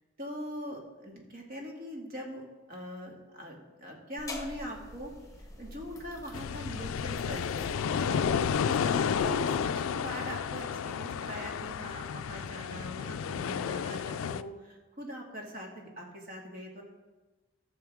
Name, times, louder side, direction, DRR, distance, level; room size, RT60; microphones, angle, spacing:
voice 1, 0.2-5.1 5.4-8.2 8.6-16.8, equal, 50° right, -1 dB, 2.1 m, -42 dB
sound 1, 4.2-9.4, left 2 dB, 15° left, 1.0 m, -46 dB
sound 2, 6.3-14.4, left 7 dB, 75° left, 0.3 m, -31 dB
14.0 x 6.7 x 3.6 m, 1.2 s
head